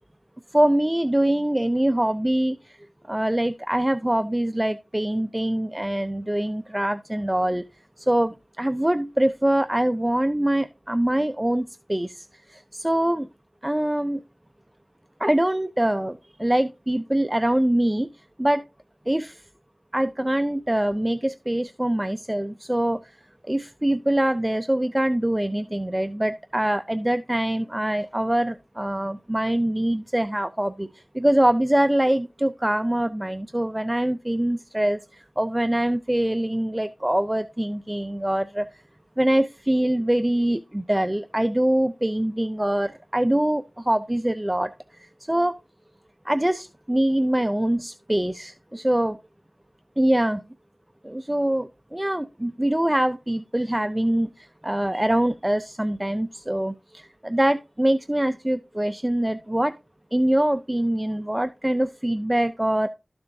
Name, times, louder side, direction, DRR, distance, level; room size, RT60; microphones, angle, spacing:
voice 1, 0.5-2.8 3.1-7.6 8.0-13.3 13.6-14.2 15.2-18.1 18.4-18.6 19.1-19.4 19.9-23.2 23.4-38.8 39.2-45.5 46.2-49.2 50.0-50.4 51.0-59.7 60.1-62.9, right 1 dB, 15° right, 11 dB, 0.4 m, -24 dB
12.5 x 6.9 x 2.7 m, 0.26 s
wide cardioid pair, 55°, 0 cm